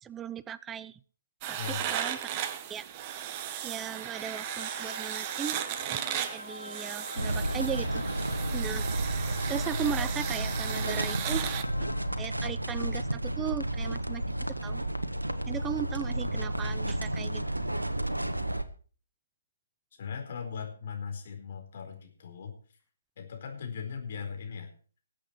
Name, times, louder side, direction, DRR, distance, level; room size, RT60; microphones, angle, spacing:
voice 1, 0.0-1.0 1.5-2.2 2.7-2.8 3.6-5.6 5.9-6.0 6.3-8.9 9.5-11.5 12.2-14.2 14.6-14.8 15.5-17.4, right 8 dB, 10° right, 18 dB, 0.5 m, -37 dB
sound 1, 1.4-11.6, right 10 dB, 25° right, 1.1 m, -36 dB
sound 2, 4.2-12.5, left 2 dB, 85° left, 1.4 m, -45 dB
sound 3, 7.2-18.6, right 1 dB, 90° right, 1.4 m, -32 dB
voice 2, 20.0-22.5 23.2-24.7, left 6 dB, 45° left, 3 dB, 4.5 m, -39 dB
20.5 x 8.4 x 4.7 m, 0.41 s
figure-of-eight pair, 135°, 0 cm